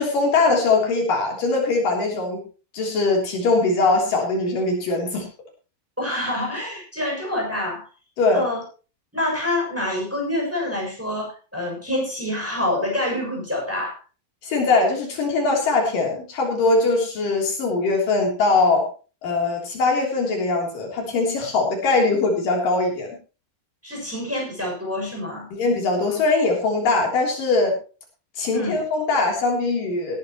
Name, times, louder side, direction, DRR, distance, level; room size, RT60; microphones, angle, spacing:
voice 1, 0.0-2.4 2.7-5.3 8.2-8.5 14.4-18.9 19.2-23.2 25.6-27.8 28.4-30.2, left 3 dB, 70° left, 1 dB, 5.0 m, -21 dB
voice 2, 6.0-7.9 8.3-8.6 9.1-14.0 23.8-25.5 28.5-28.8, left 1 dB, 5° right, -1 dB, 6.7 m, -27 dB
18.5 x 11.5 x 3.0 m, 0.34 s
omnidirectional pair, 4.0 m